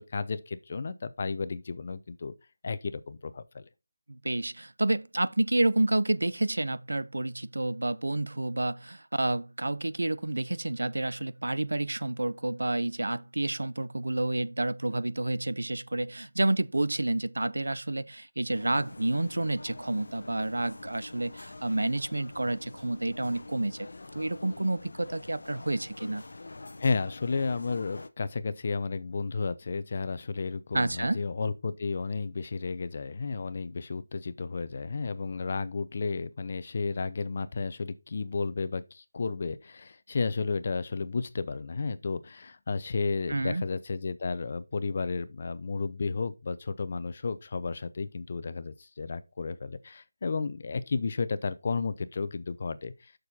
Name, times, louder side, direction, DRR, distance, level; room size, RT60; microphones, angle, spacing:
voice 1, 0.0-2.3 2.6-3.7 26.8-53.1, left 4 dB, 35° left, 0.7 m, -32 dB
voice 2, 4.1-26.2 30.7-31.2 43.3-43.6, right 2 dB, 90° right, 0.6 m, -29 dB
sound 1, 18.5-28.1, left 2 dB, 65° left, 0.9 m, -46 dB
7.1 x 6.3 x 4.2 m
figure-of-eight pair, 175°, 0 cm